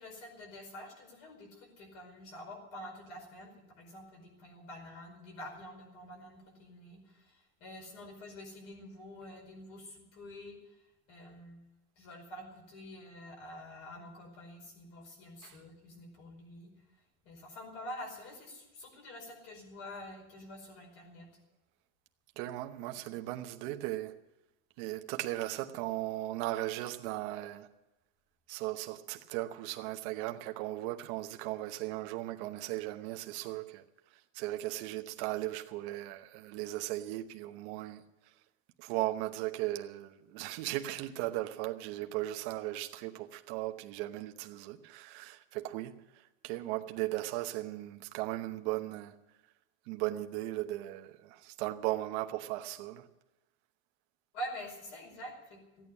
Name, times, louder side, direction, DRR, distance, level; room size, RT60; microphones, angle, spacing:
voice 1, 0.0-10.6 11.1-11.6 12.0-16.7 17.2-21.3 54.3-55.9, equal, 40° left, 4.9 m, -47 dB
voice 2, 22.4-24.2 24.8-27.7 28.5-33.8 34.3-38.0 38.8-49.1 49.9-53.1, right 16 dB, 50° right, 1.0 m, -37 dB
15.5 x 9.1 x 9.6 m
supercardioid pair, 175°, 35 cm